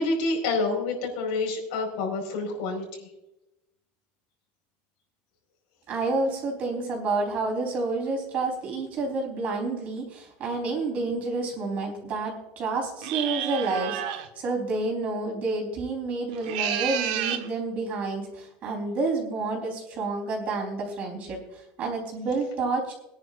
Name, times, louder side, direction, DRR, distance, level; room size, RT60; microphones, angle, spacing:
voice 1, 0.0-3.1, left 3 dB, 80° left, 1 dB, 4.8 m, -28 dB
voice 2, 5.9-22.9, right 3 dB, 35° right, 1 dB, 3.9 m, -29 dB
sound 1, 13.0-14.3 16.3-17.5, right 10 dB, 90° right, 1.3 m, -30 dB
22.5 x 10.5 x 2.5 m, 0.92 s
cardioid pair, 165°, 4 cm